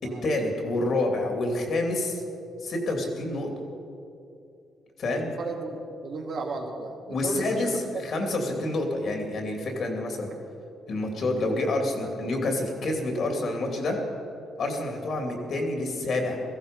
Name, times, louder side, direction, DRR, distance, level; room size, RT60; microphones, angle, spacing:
voice 1, 0.0-2.2 2.6-3.5 5.0-5.3 7.1-10.3 10.9-14.0 14.6-16.4, left 2 dB, 60° left, 2 dB, 3.0 m, -28 dB
voice 2, 5.4-5.8 6.0-8.3, right 3 dB, 55° right, 0 dB, 2.4 m, -34 dB
17.0 x 14.5 x 5.4 m, 2.7 s
cardioid pair, 90°, 0 cm